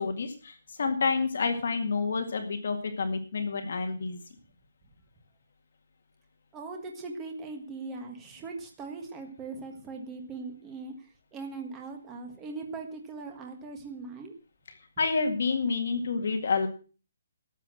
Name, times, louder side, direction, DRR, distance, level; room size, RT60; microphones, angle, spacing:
voice 1, 0.0-4.2 15.0-16.7, left 4 dB, 50° left, 6 dB, 2.1 m, -29 dB
voice 2, 6.5-10.9 11.3-14.3, right 3 dB, 10° right, 4 dB, 1.5 m, -40 dB
12.5 x 8.3 x 7.6 m, 0.38 s
hypercardioid pair, 180°, 0 cm